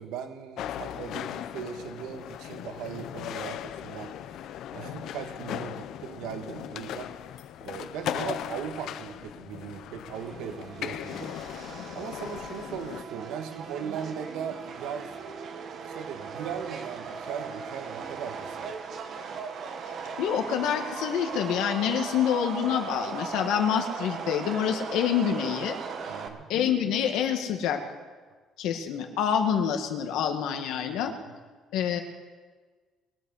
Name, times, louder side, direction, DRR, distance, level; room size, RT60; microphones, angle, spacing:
voice 1, 0.0-4.1 4.7-7.1 7.6-11.6 11.9-15.1 15.8-18.7 26.1-26.5, right 7 dB, 80° right, 7 dB, 1.3 m, -38 dB
sound 1, 0.6-13.0, left 11 dB, 60° left, 0.6 m, -38 dB
Subway metro underground, 10.1-26.3, right 5 dB, 45° right, 1.2 m, -38 dB
voice 2, 20.2-25.8 26.5-27.8 28.6-31.1 31.7-32.0, left 8 dB, 80° left, 5 dB, 1.8 m, -27 dB
22.0 x 8.3 x 6.5 m, 1.4 s
cardioid pair, 175°, 0 cm